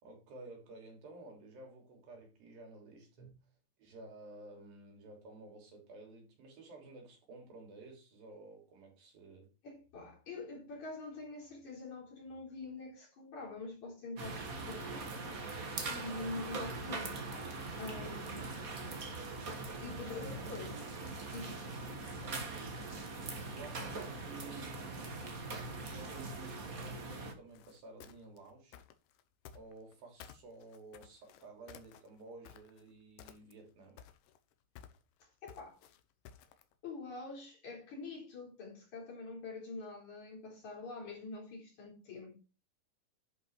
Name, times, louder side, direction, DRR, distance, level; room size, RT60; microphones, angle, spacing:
voice 1, 0.0-3.3 3.8-9.5 20.1-20.5 21.8-23.1 23.5-25.2 25.9-28.8 29.5-34.0, right 2 dB, 90° right, 4.9 m, -53 dB
voice 2, 9.6-15.1 15.9-17.4 17.8-18.7 19.8-20.8 21.3-21.7 35.2-35.8 36.8-42.4, left 3 dB, 55° left, 5.0 m, -45 dB
sound 1, 14.2-27.3, right 3 dB, 40° right, 1.2 m, -42 dB
sound 2, 27.5-30.0 30.2-32.9 33.2-33.7 34.0-36.7, left 9 dB, 75° left, 2.4 m, -55 dB
11.0 x 5.7 x 4.7 m
omnidirectional pair, 4.0 m